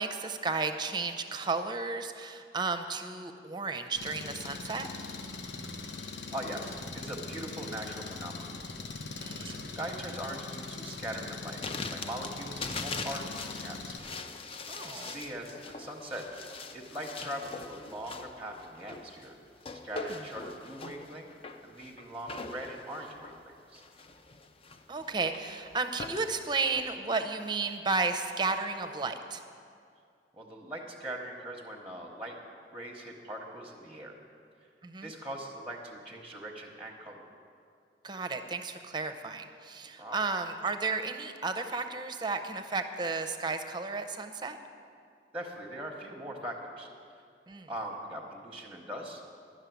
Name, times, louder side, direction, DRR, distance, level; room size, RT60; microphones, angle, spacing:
voice 1, 0.0-4.9 9.2-9.6 14.7-15.1 19.9-20.2 24.9-29.4 34.8-35.1 38.0-44.6 47.5-47.7, right 4 dB, 25° right, 8 dB, 0.6 m, -33 dB
Engine, 4.0-14.0, left 3 dB, 85° left, 0.9 m, -41 dB
voice 2, 6.3-8.5 9.4-11.6 11.9-14.2 14.9-16.3 16.7-19.4 19.8-21.3 21.6-23.8 30.3-32.4 32.7-34.2 34.6-34.7 35.0-37.2 40.0-40.2 45.3-47.2 47.7-49.2, right 1 dB, 5° right, 1 dB, 1.0 m, -41 dB
sound 1, 11.6-26.8, left 4 dB, 30° left, 0.5 m, -42 dB
11.5 x 6.5 x 9.3 m, 2.4 s
head